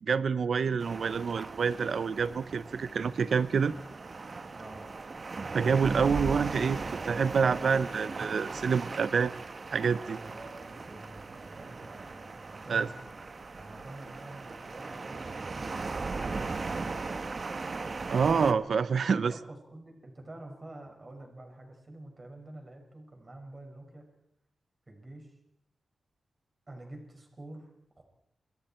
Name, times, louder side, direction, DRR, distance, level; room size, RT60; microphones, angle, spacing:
voice 1, 0.0-3.7 5.5-6.8 7.0-9.3 9.7-10.2 12.7-12.9 18.1-19.3, right 6 dB, 75° right, 15 dB, 0.8 m, -27 dB
sound 1, 0.8-18.5, right 3 dB, 50° right, 1.5 m, -38 dB
voice 2, 4.5-4.8 10.2-13.0 13.5-16.9 19.0-24.1 24.9-25.3 26.7-28.1, right 1 dB, 30° right, 3 dB, 6.0 m, -48 dB
28.5 x 25.0 x 4.5 m, 0.76 s
wide cardioid pair, 90°, 0 cm